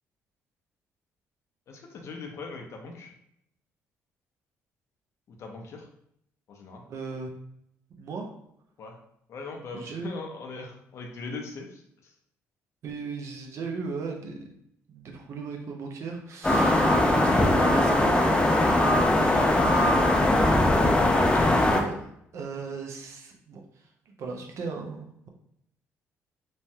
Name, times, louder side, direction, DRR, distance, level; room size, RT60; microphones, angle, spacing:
voice 1, 1.7-3.1 5.3-5.9 6.5-6.9 8.8-9.0 9.3-12.1 16.8-17.0 19.1-20.1, left 3 dB, 60° left, 2 dB, 0.6 m, -40 dB
voice 2, 6.9-7.3 8.0-8.3 9.7-10.1 12.8-14.5 14.9-18.3 21.1-22.1 22.3-23.6 24.1-25.3, right 4 dB, 60° right, 2 dB, 0.6 m, -36 dB
sound 1, 16.4-21.8, left 1 dB, 15° left, 0.5 m, -21 dB
3.1 x 2.2 x 2.7 m, 0.74 s
cardioid pair, 80°, 5 cm